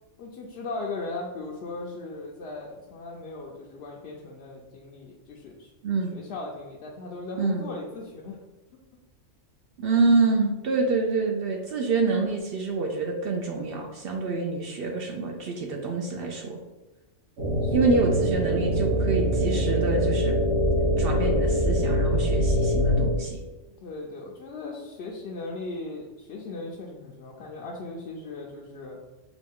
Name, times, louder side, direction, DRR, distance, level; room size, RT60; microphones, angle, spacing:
voice 1, 0.2-5.7 6.1-8.4 17.6-18.0 23.8-29.0, left 3 dB, 65° left, -3 dB, 0.7 m, -38 dB
voice 2, 5.8-6.1 7.4-7.7 9.8-16.6 17.7-20.4 21.0-23.4, right 3 dB, 65° right, 2 dB, 0.6 m, -26 dB
sound 1, 17.4-23.1, equal, 85° right, 1.6 m, -23 dB
4.9 x 2.3 x 3.5 m, 1.1 s
omnidirectional pair, 1.3 m